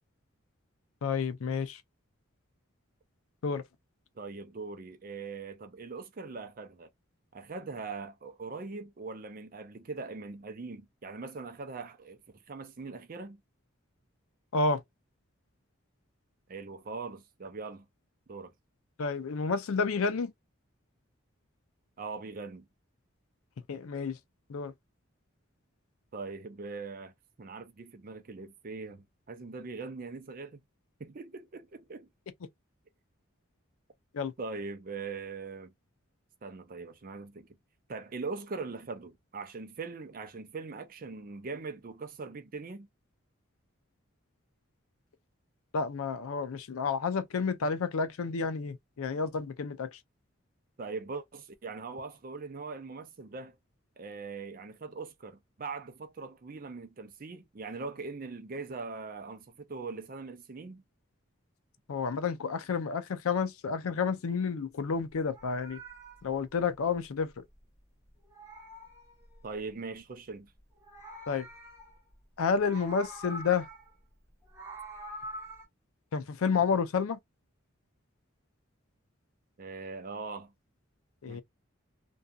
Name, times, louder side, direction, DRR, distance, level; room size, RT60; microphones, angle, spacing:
voice 1, 1.0-1.8 3.4-3.6 14.5-14.8 19.0-20.3 23.7-24.2 24.5-24.7 34.1-34.3 45.7-49.9 61.9-65.8 66.2-67.4 71.3-71.5 72.4-73.7 76.1-77.2 81.2-81.4, left 5 dB, 85° left, 0.5 m, -30 dB
voice 2, 4.2-6.9 7.3-12.2 12.5-13.4 16.5-17.8 18.3-18.5 22.0-22.7 26.1-27.1 27.4-30.6 31.0-32.1 34.4-35.7 36.4-37.6 37.9-42.9 50.8-53.6 54.0-60.8 69.4-70.5 79.6-80.5 81.3-81.4, right 4 dB, 40° right, 0.4 m, -41 dB
Meow, 65.1-67.8 68.1-69.8 70.6-72.2 72.5-74.0 74.3-75.6, right 1 dB, 15° right, 0.9 m, -46 dB
2.6 x 2.3 x 2.3 m
head